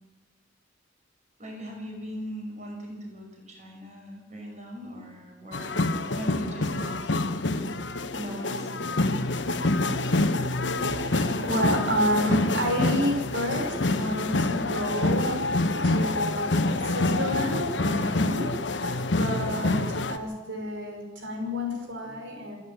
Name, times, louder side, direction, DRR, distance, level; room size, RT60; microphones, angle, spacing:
voice 1, 1.4-5.9 6.1-7.4 8.2-8.8, equal, 40° right, 1 dB, 5.6 m, -39 dB
sound 1, 5.5-20.2, left 2 dB, 75° left, 1.2 m, -26 dB
voice 2, 10.9-15.4 15.8-18.5 18.8-19.8 20.1-22.6, equal, 90° right, 2 dB, 5.8 m, -29 dB
27.5 x 11.0 x 9.0 m, 1.2 s
head